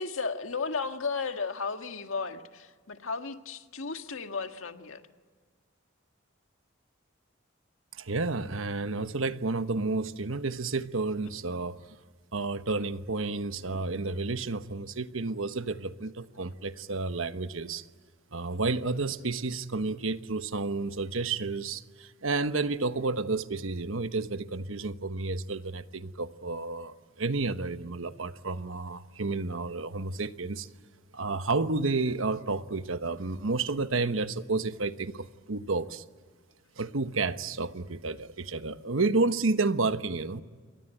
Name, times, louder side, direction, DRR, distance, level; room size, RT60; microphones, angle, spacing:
voice 1, 0.0-5.0, left 4 dB, 85° left, 1.8 m, -34 dB
voice 2, 7.9-11.8 12.3-17.9 18.3-30.7 31.1-36.0 36.8-40.4, right 3 dB, 80° right, 1.2 m, -31 dB
28.5 x 23.0 x 9.1 m
head